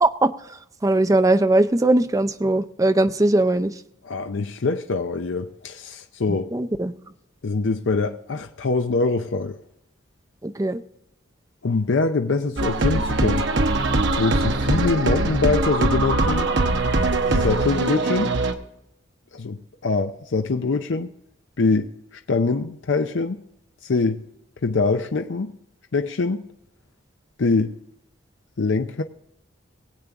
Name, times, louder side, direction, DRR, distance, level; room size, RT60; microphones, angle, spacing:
voice 1, 0.0-3.8 6.3-6.9 10.4-10.8, right 2 dB, 15° right, 0.5 m, -20 dB
voice 2, 4.0-6.5 7.4-9.6 11.6-13.4 14.1-16.5 17.3-18.3 19.3-21.1 21.6-21.9 22.3-23.4 23.8-24.2 24.6-25.5 25.9-26.5 27.4-27.7 28.6-29.0, left 3 dB, 65° left, 0.6 m, -23 dB
sound 1, 12.6-18.5, right 2 dB, 60° right, 0.9 m, -22 dB
20.0 x 8.4 x 3.5 m
head